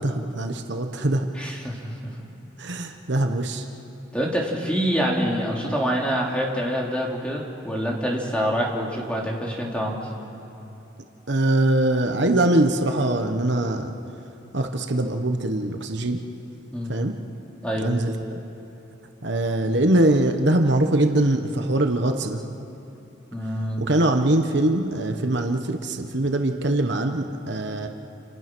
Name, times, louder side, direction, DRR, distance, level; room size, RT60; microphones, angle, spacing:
voice 1, 0.0-1.3 2.6-3.6 11.3-13.9 14.5-16.2 16.9-17.2 17.7-18.4 19.2-22.4 23.8-27.9, right 1 dB, 60° right, 5 dB, 1.3 m, -22 dB
voice 2, 1.3-2.0 4.1-10.0 16.7-16.9 17.6-17.9 23.3-23.8, equal, 5° left, -2 dB, 3.1 m, -26 dB
28.5 x 28.0 x 6.2 m, 3.0 s
head